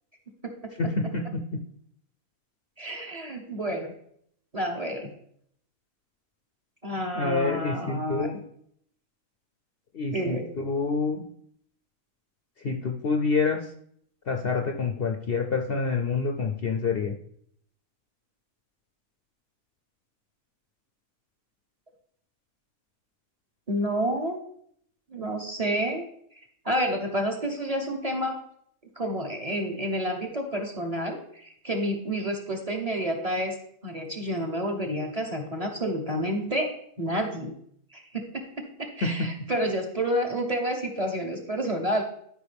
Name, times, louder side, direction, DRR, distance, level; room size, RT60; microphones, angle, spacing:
voice 1, 0.8-1.4 7.2-8.4 9.9-11.2 12.6-13.6 14.3-17.1 39.0-39.1, left 4 dB, 55° left, 4 dB, 0.7 m, -27 dB
voice 2, 2.8-3.9 4.5-5.1 6.8-8.3 10.1-10.5 23.7-24.4 25.1-26.1 26.6-28.4 29.0-33.5 33.8-36.7 37.0-37.5 37.9-42.0, equal, 30° right, 3 dB, 1.0 m, -29 dB
12.5 x 5.3 x 3.4 m, 0.67 s
omnidirectional pair, 1.5 m